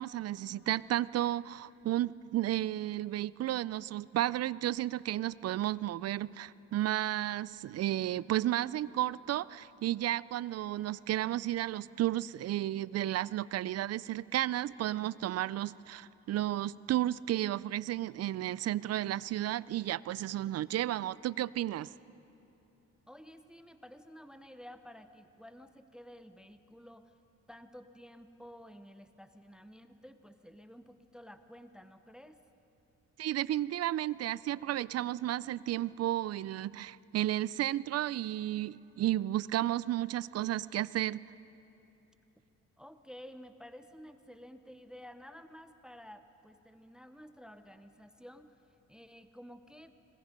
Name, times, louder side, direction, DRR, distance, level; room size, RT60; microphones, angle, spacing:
voice 1, 0.0-21.9 33.2-41.2, right 13 dB, 55° right, 20 dB, 0.4 m, -33 dB
voice 2, 23.1-27.1 27.5-32.4 42.8-48.6 48.9-50.0, equal, ahead, 9 dB, 0.8 m, -52 dB
26.5 x 21.0 x 5.2 m, 3.0 s
cardioid pair, 90°, 30 cm